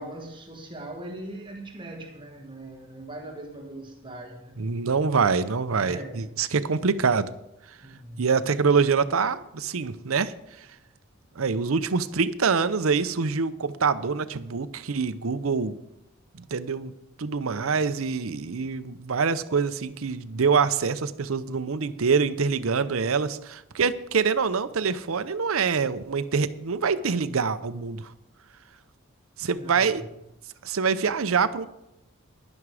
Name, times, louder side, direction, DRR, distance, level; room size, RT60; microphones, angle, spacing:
voice 1, 0.0-4.6 5.8-6.2 7.8-8.3 29.4-30.1, right 1 dB, 20° right, 2 dB, 1.3 m, -40 dB
voice 2, 4.6-7.3 8.2-10.7 11.4-15.8 16.5-16.9 17.2-28.1 29.4-30.0 30.6-31.7, right 5 dB, 80° right, 13 dB, 0.7 m, -25 dB
11.0 x 11.0 x 4.9 m, 0.85 s
head